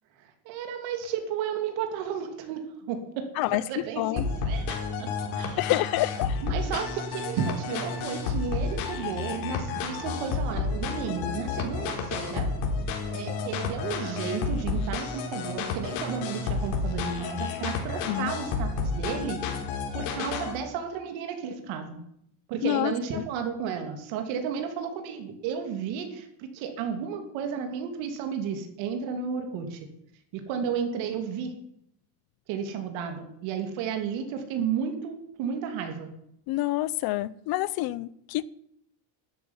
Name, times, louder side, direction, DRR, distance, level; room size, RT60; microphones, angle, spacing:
voice 1, 0.2-5.6 6.4-12.5 13.1-19.4 19.9-22.0 22.5-29.8 30.3-31.5 32.5-36.1, right 7 dB, 70° right, 6 dB, 3.0 m, -33 dB
voice 2, 3.4-4.2 5.6-6.4 18.1-18.3 22.6-23.2 36.5-38.5, left 16 dB, 50° left, 20 dB, 0.7 m, -28 dB
sound 1, 4.2-20.6, left 4 dB, 75° left, 4.4 m, -31 dB
13.0 x 10.5 x 9.6 m, 0.74 s
cardioid pair, 170°, 48 cm